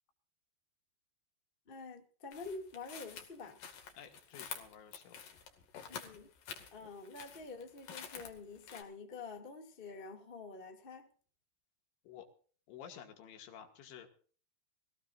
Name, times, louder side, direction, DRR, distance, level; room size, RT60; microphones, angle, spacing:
voice 1, 1.7-3.6 5.9-6.3 6.7-11.1, left 4 dB, 20° left, 1.4 m, -47 dB
sound 1, 2.3-8.8, left 7 dB, 55° left, 3.5 m, -49 dB
voice 2, 4.0-5.2 12.0-12.3 12.7-14.1, left 8 dB, 85° left, 4.7 m, -52 dB
23.5 x 16.5 x 2.6 m
omnidirectional pair, 5.1 m